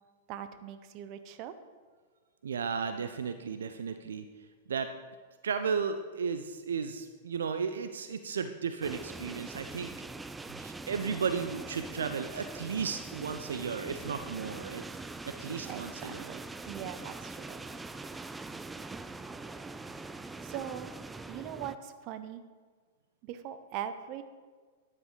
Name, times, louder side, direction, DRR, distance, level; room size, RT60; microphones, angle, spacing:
voice 1, 0.3-1.5 15.6-17.7 20.4-20.9 21.3-22.4 23.2-24.2, right 10 dB, 40° right, 11 dB, 0.8 m, -41 dB
voice 2, 2.4-4.2 4.7-4.9 5.4-9.9 10.5-14.8 15.3-16.3, right 6 dB, 70° right, 9 dB, 0.6 m, -34 dB
sound 1, 8.8-21.8, right 3 dB, 10° right, 0.4 m, -43 dB
13.0 x 10.0 x 4.0 m, 1.5 s
figure-of-eight pair, 100°, 0 cm